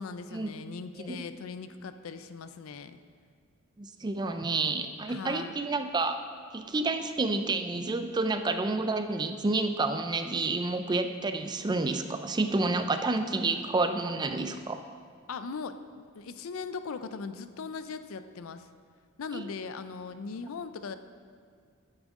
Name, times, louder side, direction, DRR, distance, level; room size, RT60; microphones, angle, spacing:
voice 1, 0.0-3.0 5.1-5.6 15.3-15.8 16.1-18.7 19.2-21.0, left 5 dB, 75° left, 11 dB, 0.4 m, -39 dB
voice 2, 3.8-6.2 6.5-14.8 19.3-19.5, right 3 dB, 20° right, 8 dB, 0.4 m, -29 dB
9.8 x 8.9 x 3.6 m, 2.1 s
head